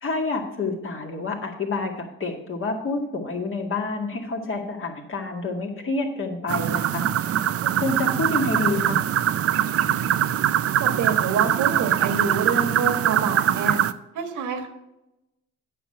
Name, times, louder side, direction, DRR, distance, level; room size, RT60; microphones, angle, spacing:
voice 1, 0.0-7.1 7.8-9.0, left 3 dB, 45° left, 2 dB, 2.1 m, -28 dB
sound 1, 6.5-13.9, right 10 dB, 50° right, 0.5 m, -22 dB
voice 2, 10.8-13.8 14.1-14.7, right 5 dB, 80° right, 6 dB, 1.6 m, -27 dB
9.0 x 6.4 x 5.8 m, 0.92 s
cardioid pair, 90°, 30 cm